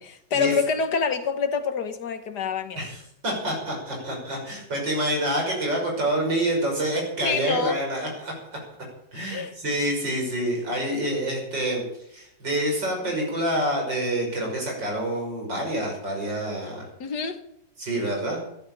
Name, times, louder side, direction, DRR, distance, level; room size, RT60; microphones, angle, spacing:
voice 1, 0.0-2.9 7.2-7.8 9.2-9.5 17.0-17.4, left 5 dB, 65° left, 1.8 m, -27 dB
voice 2, 2.8-8.3 9.1-11.8 12.1-16.9 17.8-18.4, right 1 dB, 85° right, 6.6 m, -27 dB
15.0 x 10.5 x 7.2 m
omnidirectional pair, 1.9 m